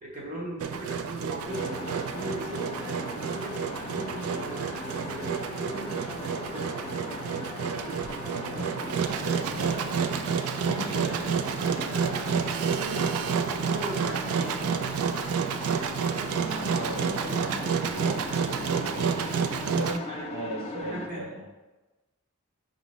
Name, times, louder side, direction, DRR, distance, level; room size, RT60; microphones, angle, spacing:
voice 1, 0.0-6.9 10.9-13.1 13.5-14.5 20.1-20.3 20.7-21.3, right 1 dB, 40° right, -4 dB, 0.9 m, -38 dB
Engine, 0.6-20.0, right 6 dB, 85° right, 0.3 m, -30 dB
sound 1, 1.5-21.1, left 3 dB, 30° left, 0.4 m, -39 dB
voice 2, 8.4-9.8 10.6-11.1 16.4-21.4, equal, 65° right, -4 dB, 1.2 m, -37 dB
5.1 x 2.7 x 3.0 m, 1.2 s
head